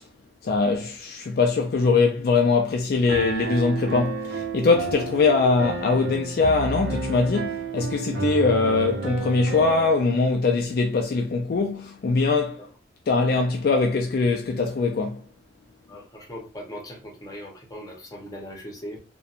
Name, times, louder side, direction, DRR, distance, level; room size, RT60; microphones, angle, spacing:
voice 1, 0.4-12.6 13.1-15.3, left 4 dB, 55° left, 0.3 m, -22 dB
Piano, 3.1-9.9, right 3 dB, 80° right, 0.6 m, -31 dB
voice 2, 15.9-19.0, equal, 20° left, 0.7 m, -39 dB
2.7 x 2.1 x 2.4 m
head